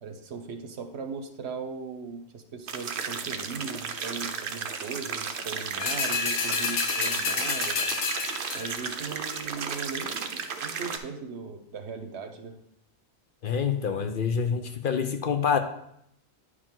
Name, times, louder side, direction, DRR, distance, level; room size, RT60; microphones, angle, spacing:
voice 1, 0.0-7.8 8.5-12.5, right 5 dB, 80° right, 7 dB, 1.1 m, -38 dB
sound 1, 2.7-11.0, right 6 dB, 55° right, 0.8 m, -34 dB
sound 2, 5.8-8.9 9.3-9.4, left 4 dB, 85° left, 1.2 m, -29 dB
voice 2, 13.4-15.6, left 6 dB, 55° left, 7 dB, 0.8 m, -26 dB
9.8 x 5.0 x 3.7 m, 0.73 s
omnidirectional pair, 1.1 m